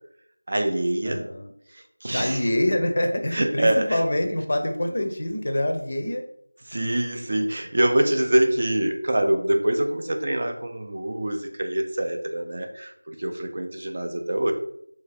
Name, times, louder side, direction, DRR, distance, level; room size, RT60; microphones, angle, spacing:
voice 1, 0.5-1.3 1.7-2.5 3.3-4.0 5.0-5.1 6.7-14.5, right 1 dB, 35° right, 3 dB, 0.4 m, -25 dB
voice 2, 1.0-1.5 2.1-6.2, left 1 dB, 40° left, 5 dB, 0.5 m, -25 dB
3.2 x 2.7 x 3.4 m, 0.71 s
figure-of-eight pair, 175°, 0 cm